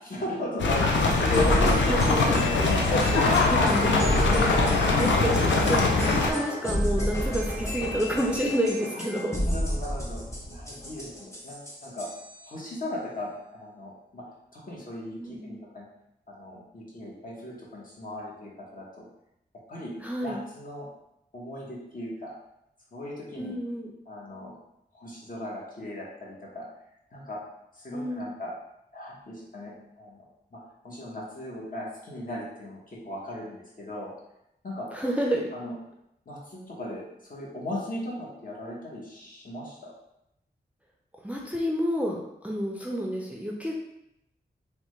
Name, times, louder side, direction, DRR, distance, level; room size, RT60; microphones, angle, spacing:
voice 1, 0.0-2.2 2.6-3.7 8.9-9.0 9.4-10.2 10.5-12.1 12.4-14.2 14.5-15.9 16.3-19.0 19.7-19.9 20.2-20.9 21.3-22.3 22.9-23.6 24.1-24.5 24.9-26.6 27.1-27.4 27.7-28.5 28.9-30.2 30.5-34.1 34.6-34.9 35.5-35.7 36.3-39.9, left 1 dB, 50° left, -5 dB, 1.1 m, -37 dB
sound 1, 0.6-6.3, left 3 dB, 85° left, 0.4 m, -22 dB
sound 2, 1.1-12.4, equal, 15° left, 0.9 m, -31 dB
voice 2, 1.9-2.3 3.1-4.0 4.7-9.4 15.2-15.5 20.0-20.4 23.4-23.9 27.9-28.3 34.9-35.5 41.2-43.7, equal, 10° right, -1 dB, 0.5 m, -30 dB
3.3 x 2.2 x 3.1 m, 0.83 s
cardioid pair, 50°, 18 cm